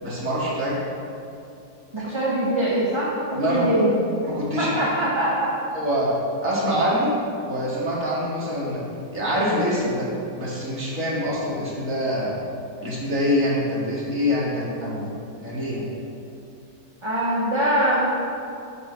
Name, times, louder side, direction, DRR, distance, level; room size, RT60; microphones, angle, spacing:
voice 1, 0.0-0.8 2.0-2.1 3.3-3.7 4.3-4.8 5.7-6.1 6.4-7.1 7.4-8.8 9.1-10.1 10.3-12.4 12.8-15.1 15.4-15.8, equal, 50° right, -7 dB, 2.5 m, -25 dB
voice 2, 1.9-3.9 4.6-5.5 17.0-18.1, right 1 dB, 20° right, -7 dB, 1.0 m, -23 dB
8.5 x 5.5 x 5.9 m, 2.6 s
omnidirectional pair, 1.8 m